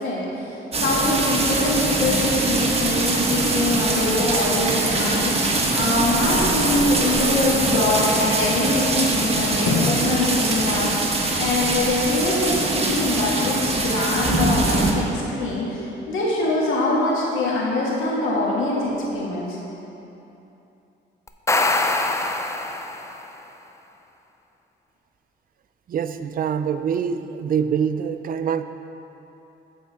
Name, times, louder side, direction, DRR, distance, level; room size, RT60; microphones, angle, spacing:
voice 1, 0.0-19.6, left 2 dB, 85° left, -5 dB, 1.6 m, -24 dB
sound 1, 0.7-14.9, right 2 dB, 30° right, 1.1 m, -22 dB
Drum, 9.7-11.6, left 5 dB, 70° left, 0.8 m, -29 dB
sound 2, 21.3-23.2, left 2 dB, 15° left, 0.5 m, -23 dB
voice 2, 25.9-28.6, right 7 dB, 45° right, 10 dB, 0.4 m, -24 dB
7.8 x 4.6 x 6.8 m, 3.0 s
cardioid pair, 90°, 20 cm